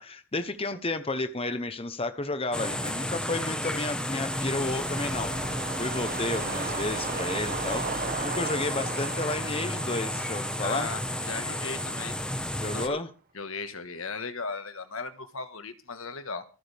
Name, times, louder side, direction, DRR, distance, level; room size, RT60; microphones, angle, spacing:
voice 1, 0.0-7.9 8.2-10.9 12.6-13.1, left 2 dB, 25° left, 1.0 m, -32 dB
sound 1, 2.5-12.9, left 1 dB, 5° left, 1.3 m, -32 dB
sound 2, 3.9-12.2 12.6-12.7, right 4 dB, 40° right, 1.4 m, -37 dB
voice 2, 10.6-12.2 12.7-13.0 13.3-16.4, left 4 dB, 70° left, 1.6 m, -37 dB
26.0 x 8.8 x 3.5 m
head